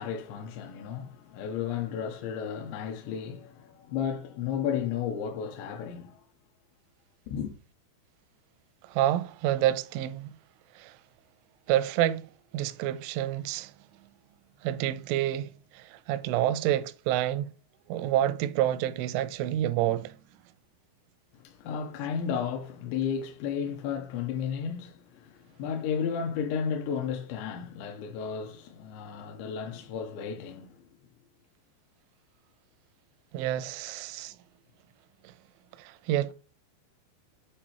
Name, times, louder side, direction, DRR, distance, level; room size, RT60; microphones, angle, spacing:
voice 1, 0.0-6.2 7.3-7.5 21.4-30.7, left 7 dB, 80° left, 2.9 m, -33 dB
voice 2, 8.9-10.3 10.8-11.0 11.7-12.3 12.5-13.7 14.6-17.5 17.9-20.2 33.3-34.3 35.2-35.3 35.8-36.3, right 12 dB, 85° right, 3.0 m, -28 dB
9.0 x 4.2 x 3.0 m
omnidirectional pair, 5.4 m